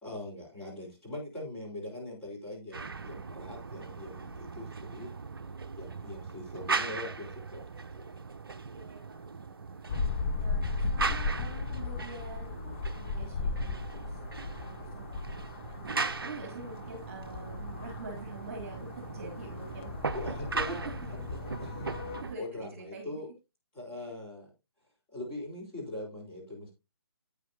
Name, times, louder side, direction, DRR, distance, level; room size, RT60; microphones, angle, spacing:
voice 1, 0.0-5.1 5.8-8.2 20.1-23.3 23.7-24.5 25.1-26.7, left 1 dB, 10° left, -6 dB, 4.1 m, -42 dB
sound 1, 2.7-22.4, right 4 dB, 60° right, 0.7 m, -39 dB
voice 2, 8.7-9.8 10.4-15.8 16.2-20.2 20.7-20.8 21.9-23.1 24.0-24.1, right 3 dB, 35° right, 2 dB, 2.7 m, -46 dB
sound 2, 9.9-22.2, left 3 dB, 30° left, 0.7 m, -36 dB
sound 3, 12.4-22.0, left 6 dB, 85° left, 2.2 m, -53 dB
9.0 x 9.0 x 2.8 m, 0.25 s
figure-of-eight pair, 140°, 13 cm